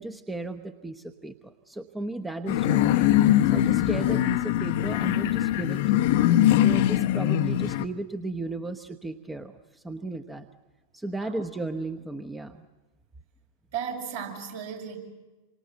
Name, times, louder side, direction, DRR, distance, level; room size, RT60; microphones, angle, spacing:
voice 1, 0.0-3.1 3.5-5.8 6.6-10.5 10.9-12.6, right 2 dB, 10° right, 8 dB, 1.1 m, -35 dB
sound 1, 2.5-7.9, left 13 dB, 50° left, 0.9 m, -22 dB
voice 2, 13.7-15.0, right 7 dB, 60° right, 1 dB, 6.5 m, -35 dB
28.0 x 25.0 x 8.0 m, 1.2 s
figure-of-eight pair, 90°, 0 cm